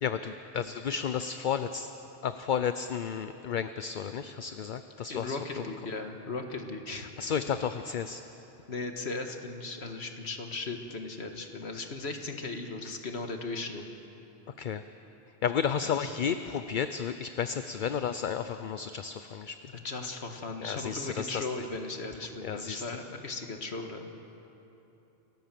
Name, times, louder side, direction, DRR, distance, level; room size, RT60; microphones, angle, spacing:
voice 1, 0.0-1.9 2.2-5.6 7.2-8.2 14.6-14.8 15.4-19.6 20.6-21.4 22.4-22.8, left 7 dB, 55° left, 10 dB, 0.7 m, -32 dB
voice 2, 5.1-7.1 8.7-13.8 15.8-16.1 19.8-24.1, left 3 dB, 75° left, 4 dB, 1.9 m, -37 dB
28.5 x 13.5 x 7.6 m, 3.0 s
omnidirectional pair, 1.1 m